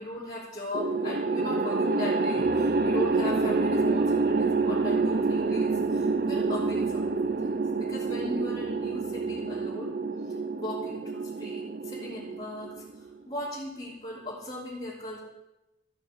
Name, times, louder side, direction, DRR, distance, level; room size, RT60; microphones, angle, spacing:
voice 1, 0.0-7.1 7.4-7.5 7.8-10.0 10.6-15.2, left 1 dB, 30° left, -11 dB, 3.0 m, -38 dB
sound 1, 0.7-13.1, right 3 dB, 50° right, 0.6 m, -27 dB
Brass instrument, 2.3-9.8, equal, 15° right, 1.2 m, -48 dB
14.0 x 6.2 x 7.4 m, 0.99 s
head